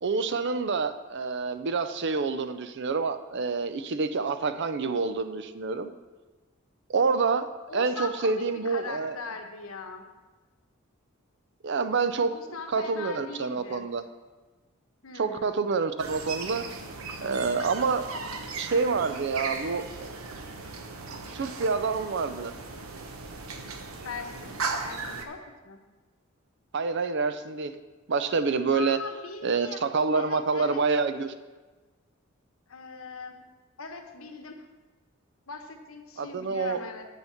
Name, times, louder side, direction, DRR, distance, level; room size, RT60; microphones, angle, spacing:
voice 1, 0.0-5.9 6.9-7.5 7.7-9.2 11.6-12.3 12.7-14.0 15.2-16.7 17.2-18.1 18.6-20.2 21.3-22.5 26.7-27.7 28.1-29.0 29.4-31.3 36.2-36.8, right 4 dB, 55° right, 11 dB, 0.5 m, -27 dB
voice 2, 7.7-10.1 12.2-13.8 15.0-15.5 24.0-25.8 28.7-29.8 30.1-30.8 32.7-33.4 33.8-34.7 35.5-37.1, left 4 dB, 85° left, 5 dB, 1.1 m, -40 dB
sound 1, 16.0-25.3, right 4 dB, 85° right, 0.9 m, -37 dB
8.1 x 7.0 x 5.8 m, 1.3 s
head